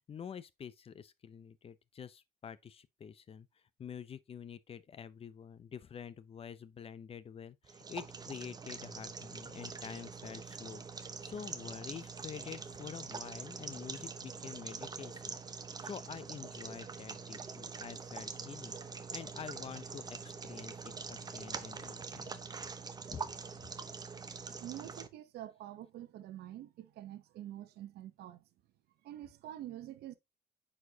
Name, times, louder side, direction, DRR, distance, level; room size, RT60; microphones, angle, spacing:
voice 1, 0.0-3.5 3.8-15.4 15.8-18.8 19.1-22.4 23.1-23.2, left 7 dB, 35° left, 0.6 m, -47 dB
sound 1, 7.6-25.1, right 5 dB, 25° right, 0.8 m, -44 dB
voice 2, 24.6-28.5 29.0-30.2, right 12 dB, 75° right, 0.8 m, -46 dB
9.3 x 4.4 x 2.8 m
cardioid pair, 110°, 17 cm